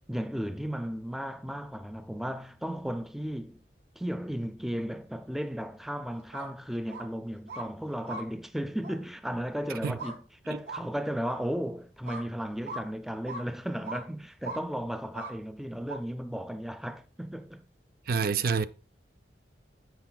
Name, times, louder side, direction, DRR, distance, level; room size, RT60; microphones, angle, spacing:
voice 1, 0.1-3.6 4.0-17.6, equal, ahead, 0.4 m, -35 dB
sound 1, 6.2-6.5 6.9-7.1 7.5-7.7 8.0-8.2 8.8-9.0 10.0-10.2 10.7-10.8 11.3-11.4 12.0-12.3 12.7-12.8 13.3-13.4 13.8-14.0 14.4-14.6 15.1-15.3 15.9-16.0, right 2 dB, 70° right, 2.0 m, -39 dB
voice 2, 18.1-18.7, right 5 dB, 55° right, 0.5 m, -27 dB
10.5 x 7.8 x 2.3 m
head